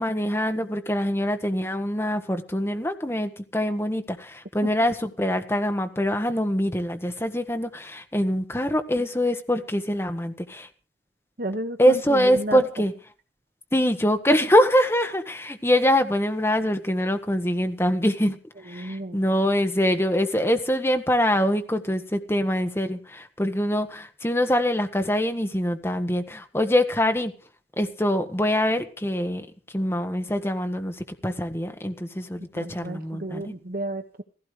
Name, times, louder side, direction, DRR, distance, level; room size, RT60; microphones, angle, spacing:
voice 1, 0.0-10.7 11.8-12.9 13.7-18.4 18.6-27.3 27.8-29.5 29.7-33.5, equal, 15° left, 6 dB, 1.4 m, -24 dB
voice 2, 11.4-12.6 18.7-19.2 32.6-34.2, right 1 dB, 55° right, 8 dB, 1.1 m, -32 dB
16.0 x 16.0 x 5.0 m, 0.38 s
head